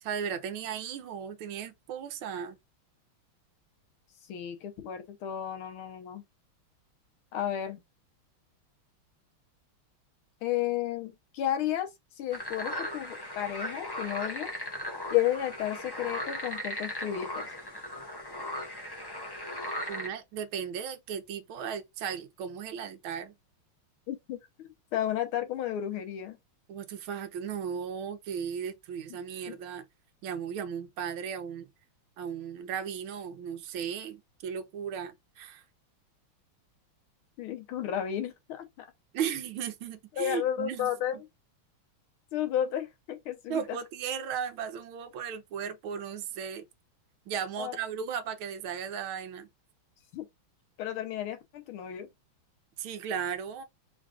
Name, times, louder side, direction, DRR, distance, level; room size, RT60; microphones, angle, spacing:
voice 1, 0.0-2.6 19.9-23.3 26.7-29.8 30.2-31.7 32.2-35.6 39.1-41.2 43.5-46.7 47.3-49.5 52.8-53.6, right 7 dB, 80° right, 1.6 m, -36 dB
voice 2, 4.3-6.2 7.3-7.8 10.4-11.9 12.2-14.5 15.1-17.5 24.1-26.4 29.5-29.6 37.4-38.9 40.2-41.2 42.3-43.8 47.6-47.8 50.1-50.3 50.8-52.1, left 11 dB, 90° left, 1.8 m, -32 dB
Frogs croak, 12.3-20.1, left 1 dB, 25° left, 0.4 m, -37 dB
4.5 x 2.4 x 4.8 m
omnidirectional pair, 2.3 m